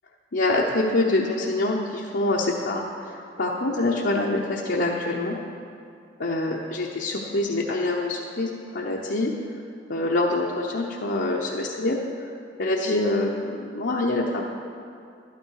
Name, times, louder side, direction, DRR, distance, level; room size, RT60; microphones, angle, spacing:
voice 1, 0.3-2.8 3.4-5.4 6.2-9.3 9.9-12.0 12.6-14.4, left 2 dB, 65° left, -3 dB, 0.9 m, -25 dB
12.5 x 9.6 x 4.7 m, 2.4 s
head